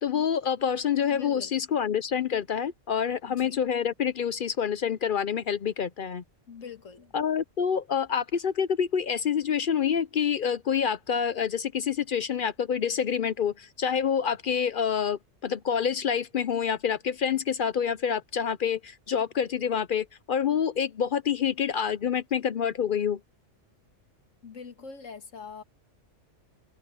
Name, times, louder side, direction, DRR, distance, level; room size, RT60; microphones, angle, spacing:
voice 1, 0.0-6.2 7.1-23.2, left 7 dB, 55° left, 0.6 m, -27 dB
voice 2, 1.1-1.6 3.3-3.6 6.5-7.1 24.4-25.6, left 5 dB, 90° left, 2.0 m, -43 dB
open air
omnidirectional pair, 1.3 m